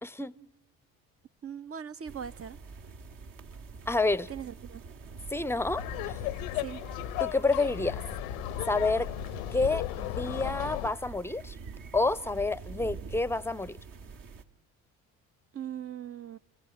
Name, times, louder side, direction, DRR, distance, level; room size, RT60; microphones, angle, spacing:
voice 1, 0.0-0.3 3.9-4.3 5.3-6.2 7.2-8.0 8.7-9.1 9.5-11.5 11.9-13.8, left 3 dB, 5° left, 0.7 m, -29 dB
voice 2, 1.4-2.6 4.3-4.8 6.5-6.8 15.5-16.4, right 8 dB, 35° right, 0.7 m, -40 dB
sound 1, 2.1-14.4, right 4 dB, 50° right, 1.8 m, -45 dB
Laughter, 5.8-10.9, left 16 dB, 75° left, 0.8 m, -35 dB
30.0 x 15.5 x 9.4 m
hypercardioid pair, 55°, 42 cm